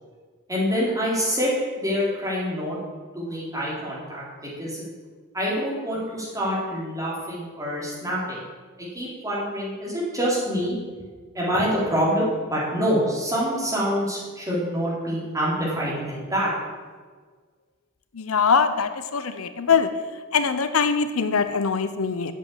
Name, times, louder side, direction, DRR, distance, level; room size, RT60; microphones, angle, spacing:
voice 1, 0.5-2.8 3.1-4.8 5.3-8.4 8.8-10.8 11.3-16.5, equal, 15° right, -6 dB, 4.3 m, -26 dB
voice 2, 18.2-19.9 20.3-22.3, left 5 dB, 75° left, 10 dB, 0.7 m, -22 dB
8.2 x 7.6 x 8.7 m, 1.5 s
head